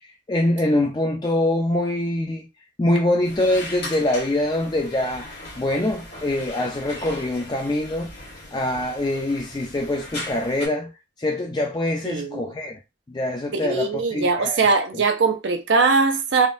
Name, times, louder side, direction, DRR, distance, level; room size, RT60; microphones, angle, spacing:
voice 1, 0.3-2.5 2.8-8.1 8.5-10.9 11.2-12.8 13.1-14.6 14.9-15.0, left 1 dB, 25° left, 0.4 m, -24 dB
sound 1, 3.2-10.7, left 2 dB, 60° left, 1.4 m, -38 dB
voice 2, 12.0-12.5 13.6-16.5, right 4 dB, 75° right, 0.5 m, -21 dB
3.5 x 2.2 x 2.5 m
head